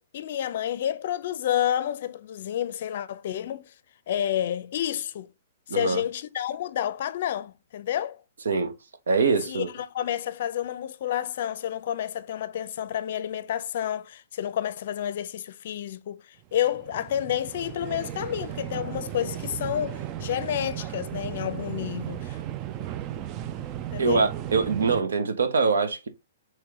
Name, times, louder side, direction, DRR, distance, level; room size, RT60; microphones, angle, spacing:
voice 1, 0.0-3.7 4.1-5.3 5.7-8.2 9.5-22.4 23.9-24.3, left 11 dB, 55° left, 0.5 m, -30 dB
voice 2, 5.7-6.0 8.4-8.7 9.1-9.7 24.0-26.1, right 4 dB, 90° right, 0.9 m, -23 dB
sound 1, 16.4-25.0, right 12 dB, 30° right, 0.3 m, -35 dB
4.8 x 3.2 x 3.5 m
hypercardioid pair, 155°, 0 cm